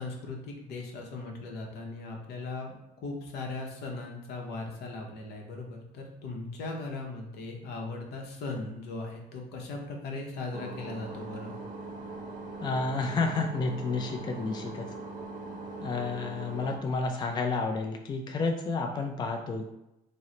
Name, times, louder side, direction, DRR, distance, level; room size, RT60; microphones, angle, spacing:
voice 1, 0.0-11.5, left 3 dB, 75° left, 1 dB, 0.7 m, -38 dB
sound 1, 10.5-16.8, right 3 dB, 55° right, 0.6 m, -41 dB
voice 2, 12.6-14.9 15.8-19.6, left 3 dB, 25° left, 3 dB, 0.3 m, -30 dB
3.0 x 2.0 x 3.8 m, 0.91 s
cardioid pair, 110°, 17 cm